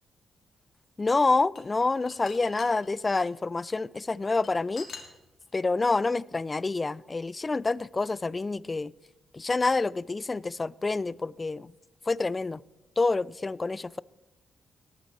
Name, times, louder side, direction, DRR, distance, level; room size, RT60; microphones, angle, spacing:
voice 1, 1.0-4.9 5.5-8.9 9.3-11.7 12.1-12.6 13.0-14.0, left 3 dB, 25° left, 0.3 m, -27 dB
sound 1, 1.2-3.3 4.0-5.6, left 5 dB, 55° left, 2.1 m, -44 dB
18.5 x 8.9 x 4.4 m
cardioid pair, 100°, 0 cm